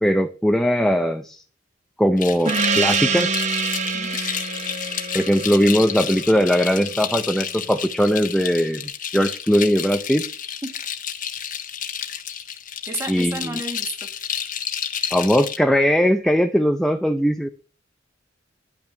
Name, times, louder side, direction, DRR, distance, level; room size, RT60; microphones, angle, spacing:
voice 1, 0.0-1.4 2.0-3.3 5.1-10.2 13.1-13.6 15.1-17.5, equal, ahead, 6 dB, 0.6 m, -20 dB
sound 1, 2.2-15.6, left 8 dB, 45° left, 1.3 m, -31 dB
Gong, 2.5-7.5, right 4 dB, 40° right, 1.1 m, -26 dB
voice 2, 12.9-14.1, right 1 dB, 15° right, 6 dB, 1.8 m, -31 dB
10.5 x 5.9 x 7.6 m, 0.38 s
head